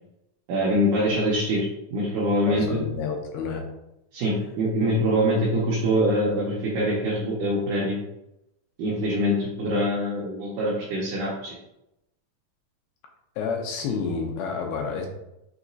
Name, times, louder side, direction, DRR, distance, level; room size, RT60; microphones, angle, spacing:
voice 1, 0.5-1.7 1.9-2.8 4.1-8.0 8.8-11.6, equal, 75° right, -5 dB, 1.9 m, -24 dB
voice 2, 2.5-3.6 13.4-15.1, left 5 dB, 80° left, 2 dB, 2.4 m, -29 dB
6.0 x 2.9 x 2.6 m, 0.86 s
omnidirectional pair, 4.3 m